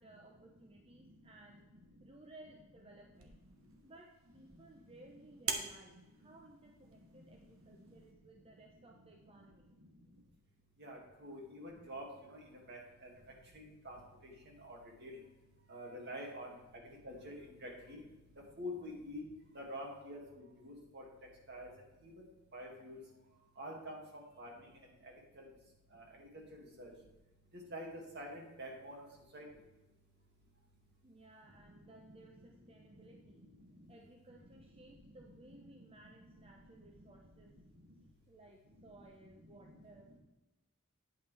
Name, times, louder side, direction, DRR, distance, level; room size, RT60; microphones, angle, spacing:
voice 1, 0.0-1.6 2.0-3.4 3.8-9.7 31.0-33.4 33.9-37.5 38.3-40.2, right 2 dB, 30° right, 1 dB, 0.7 m, -59 dB
sound 1, 3.1-8.1, right 5 dB, 75° right, 1.1 m, -46 dB
voice 2, 10.8-13.1 13.5-14.0 14.6-15.2 15.7-16.5 17.0-18.0 18.6-19.2 19.5-21.0 21.5-21.7 22.0-22.1 22.5-23.0 23.6-24.0 24.4-24.7 25.0-25.4 25.9-26.9 27.7-27.9 28.1-29.0 29.3-29.4 31.7-31.8 35.4-35.5, equal, 55° right, 0 dB, 2.2 m, -47 dB
9.2 x 8.4 x 3.4 m, 1.1 s
head